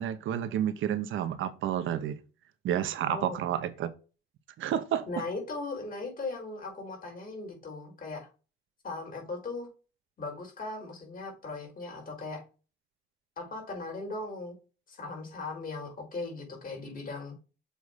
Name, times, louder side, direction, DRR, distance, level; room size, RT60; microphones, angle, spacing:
voice 1, 0.0-2.2 2.6-3.9 4.6-5.1, right 10 dB, 80° right, 1.1 m, -30 dB
voice 2, 3.1-3.4 5.1-8.3 8.8-9.7 10.2-12.4 13.4-14.6 14.9-17.4, left 3 dB, 45° left, 4.3 m, -38 dB
7.1 x 3.9 x 4.8 m
cardioid pair, 90°, 20 cm